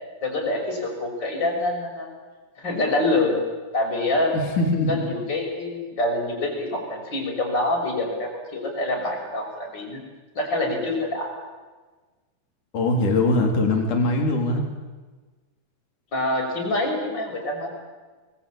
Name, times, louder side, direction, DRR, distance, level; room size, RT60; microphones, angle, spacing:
voice 1, 0.2-2.1 2.6-3.4 3.7-4.3 4.9-10.0 10.3-11.3 16.1-17.7, left 2 dB, 25° left, 1 dB, 6.5 m, -26 dB
voice 2, 4.6-5.0 12.7-14.6, left 2 dB, 45° left, 3 dB, 4.6 m, -21 dB
27.5 x 21.0 x 8.6 m, 1.4 s
omnidirectional pair, 5.1 m